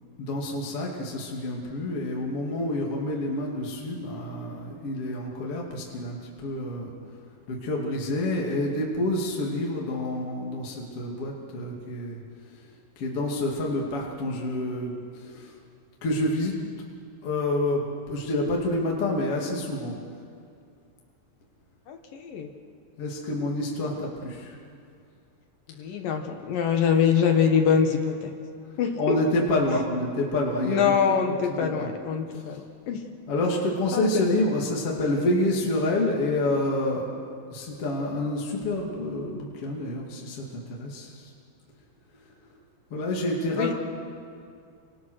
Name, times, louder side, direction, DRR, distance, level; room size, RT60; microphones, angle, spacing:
voice 1, 0.2-7.0 7.5-12.2 13.0-15.6 16.0-16.5 17.2-19.9 23.0-24.5 29.0-31.1 31.5-31.9 32.3-32.4 33.3-37.1 37.5-41.3 42.9-43.7, left 1 dB, 40° left, -2 dB, 3.2 m, -28 dB
voice 2, 21.9-22.5 25.8-28.3 28.8-29.2 30.7-33.0 33.9-34.3 43.5-43.7, left 7 dB, 65° left, 4 dB, 2.9 m, -24 dB
29.0 x 26.0 x 6.5 m, 2.4 s
omnidirectional pair, 4.7 m